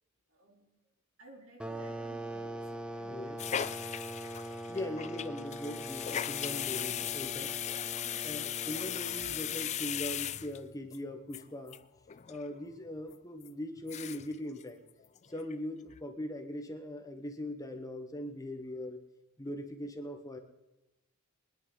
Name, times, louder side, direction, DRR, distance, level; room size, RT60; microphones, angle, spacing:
voice 1, 0.3-0.9 1.2-3.7 7.9-8.4 20.3-20.4, right 1 dB, 65° right, 1 dB, 3.4 m, -57 dB
sound 1, 1.6-10.0, right 1 dB, 5° right, 0.7 m, -42 dB
sound 2, 3.4-11.0 11.3-11.4 11.7-11.8 12.1-12.4 12.8-12.9 13.4-13.5 13.8-14.4 14.6-14.7 15.0-15.5 15.9-16.0, left 10 dB, 30° left, 0.4 m, -37 dB
voice 2, 4.7-7.5 8.2-11.8 12.3-14.8 15.3-19.1 19.4-20.4, left 1 dB, 15° left, 5 dB, 1.1 m, -40 dB
23.0 x 10.5 x 3.9 m, 0.99 s
head